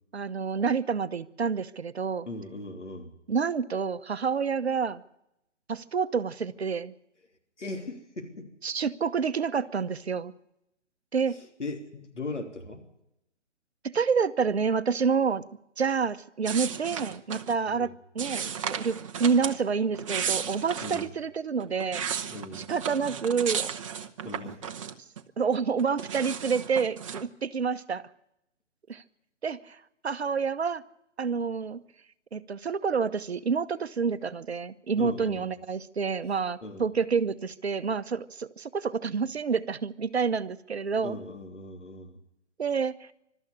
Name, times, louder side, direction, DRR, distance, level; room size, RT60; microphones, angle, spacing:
voice 1, 0.1-2.3 3.3-5.0 5.7-6.9 8.6-10.3 11.1-11.4 13.8-15.4 15.8-23.7 25.4-28.0 28.9-29.0 29.4-30.8 31.2-31.8 32.3-41.2 42.6-43.1, right 5 dB, 60° right, 12 dB, 0.9 m, -28 dB
voice 2, 2.3-3.1 7.6-8.5 11.3-12.8 17.7-17.9 20.8-21.1 22.3-22.7 23.9-24.6 35.0-35.5 36.6-36.8 41.0-42.2, left 2 dB, 75° left, 3 dB, 3.5 m, -39 dB
sound 1, 16.4-17.6 18.2-19.6 19.9-21.1 21.6-25.2 25.5-27.3, right 7 dB, 25° right, 0.9 m, -34 dB
21.5 x 13.0 x 9.9 m, 0.83 s
figure-of-eight pair, 135°, 36 cm